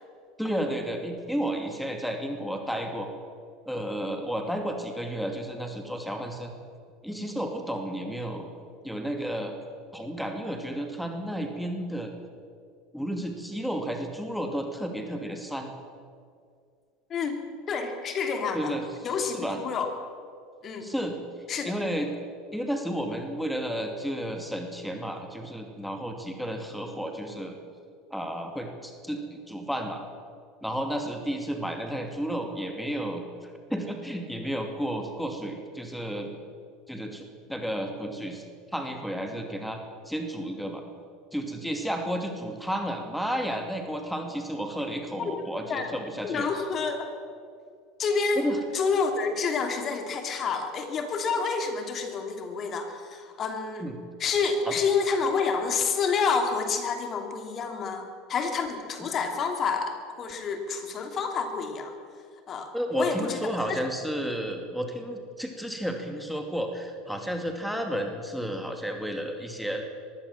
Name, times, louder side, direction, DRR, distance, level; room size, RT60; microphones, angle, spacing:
voice 1, 0.4-3.1 3.7-6.5 7.0-8.5 8.8-9.6 9.9-12.1 12.9-15.7 18.5-18.9 19.2-19.6 20.8-21.2 21.6-22.1 22.5-27.6 28.1-30.0 30.6-36.3 36.9-38.4 38.7-39.8 40.1-40.8 41.3-46.5 48.4-48.6 53.8-54.0 54.7-54.8 62.7-69.8, equal, ahead, 4 dB, 2.6 m, -32 dB
voice 2, 17.7-18.7 19.0-19.9 20.6-20.9 21.5-21.7 45.2-45.3 45.7-45.9 46.2-47.1 48.0-48.5 48.7-53.9 54.2-61.9 62.5-63.4 63.7-63.8, left 5 dB, 40° left, 5 dB, 2.9 m, -28 dB
22.0 x 16.0 x 7.4 m, 2.2 s
hypercardioid pair, 75°, 0 cm